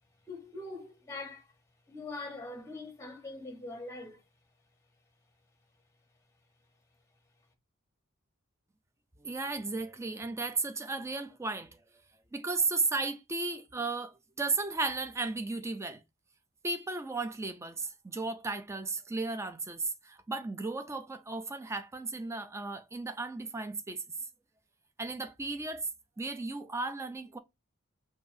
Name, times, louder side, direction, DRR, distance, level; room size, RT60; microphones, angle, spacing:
voice 1, 0.3-1.5 1.9-4.2, left 2 dB, 15° left, 0.9 m, -42 dB
voice 2, 9.2-11.8 12.3-16.0 16.6-24.0 25.0-25.9 26.2-27.4, right 3 dB, 15° right, 0.4 m, -34 dB
4.9 x 2.6 x 2.6 m
head